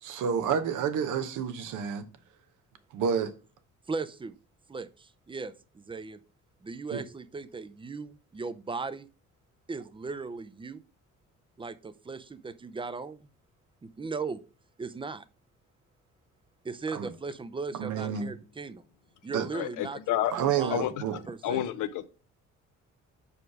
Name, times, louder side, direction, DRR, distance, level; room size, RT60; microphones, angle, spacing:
voice 1, 0.0-2.0 2.9-3.3 6.9-7.0 16.9-17.1 17.8-18.4 19.3-19.5 20.3-21.2 21.5-21.6, right 7 dB, 85° right, 0.9 m, -29 dB
voice 2, 3.9-4.4 4.7-6.2 6.6-9.1 9.7-10.8 11.6-13.3 13.8-14.4 14.8-15.2 16.6-18.8 19.2-20.8 21.3-21.6, right 4 dB, 15° right, 0.5 m, -37 dB
voice 3, 19.5-20.3 20.7-20.9 21.4-22.1, left 13 dB, 85° left, 0.7 m, -29 dB
5.0 x 4.9 x 4.7 m
cardioid pair, 90°, 30 cm